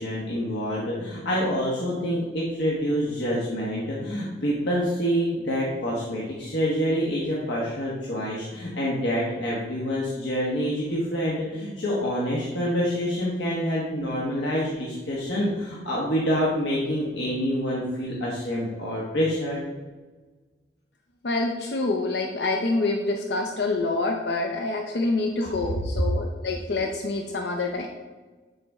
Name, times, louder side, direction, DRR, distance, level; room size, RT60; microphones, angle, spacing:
voice 1, 0.0-19.6 25.6-25.7, equal, 85° left, -5 dB, 1.3 m, -27 dB
voice 2, 21.2-27.9, left 2 dB, 70° left, 3 dB, 0.6 m, -26 dB
9.5 x 4.1 x 3.5 m, 1.3 s
head